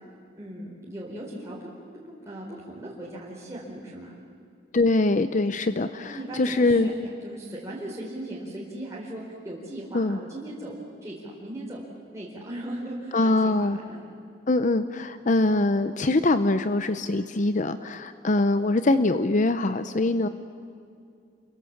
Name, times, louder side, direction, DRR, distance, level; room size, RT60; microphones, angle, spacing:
voice 1, 0.4-1.7 1.9-4.2 6.0-10.8 11.0-11.8 12.1-14.0, right 1 dB, 15° right, -6 dB, 4.2 m, -38 dB
voice 2, 4.7-6.9 9.9-10.2 13.1-13.8 14.5-20.3, left 2 dB, 45° left, 11 dB, 0.7 m, -23 dB
29.0 x 23.0 x 7.3 m, 2.4 s
head